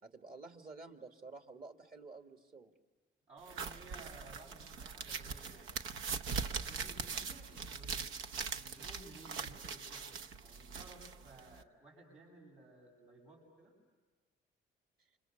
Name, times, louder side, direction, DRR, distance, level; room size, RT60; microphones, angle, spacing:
voice 1, 0.0-2.7, right 3 dB, 45° right, 5 dB, 2.4 m, -51 dB
voice 2, 3.3-5.7 6.5-8.2 8.5-10.1 10.4-13.8, right 2 dB, 70° right, -4 dB, 7.9 m, -57 dB
sound 1, 3.5-11.6, right 5 dB, 90° right, 0.9 m, -42 dB
29.5 x 26.5 x 6.8 m, 1.3 s
cardioid pair, 90°, 20 cm